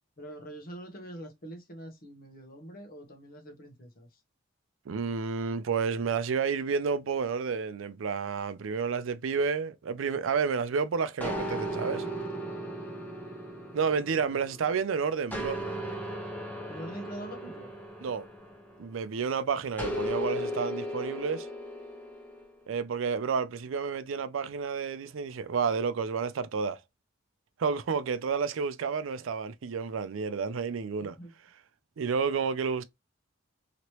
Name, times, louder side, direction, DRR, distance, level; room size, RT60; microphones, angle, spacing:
voice 1, 0.2-4.2 16.7-17.7 31.0-31.3, right 1 dB, 45° left, 1.0 m, -44 dB
voice 2, 4.9-12.1 13.7-15.6 18.0-18.3 18.8-21.5 22.7-26.8 27.6-31.2 32.0-32.8, right 5 dB, 80° right, 0.4 m, -30 dB
sound 1, 11.2-14.8 15.3-19.0 19.8-22.5, equal, 10° left, 0.9 m, -36 dB
3.0 x 2.9 x 2.9 m
head